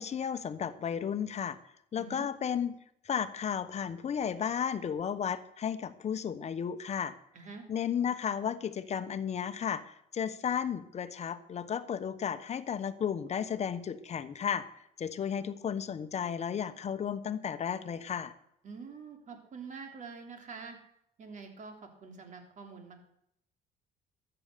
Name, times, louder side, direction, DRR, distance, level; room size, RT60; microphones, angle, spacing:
voice 1, 0.0-1.6 1.9-2.7 3.1-7.1 7.7-14.6 15.0-18.3, left 8 dB, 40° left, 12 dB, 1.1 m, -33 dB
voice 2, 2.0-2.3 7.3-7.7 18.6-20.8 21.2-23.0, right 5 dB, 45° right, 4 dB, 3.2 m, -46 dB
13.5 x 9.1 x 6.8 m, 0.74 s
cardioid pair, 110°, 17 cm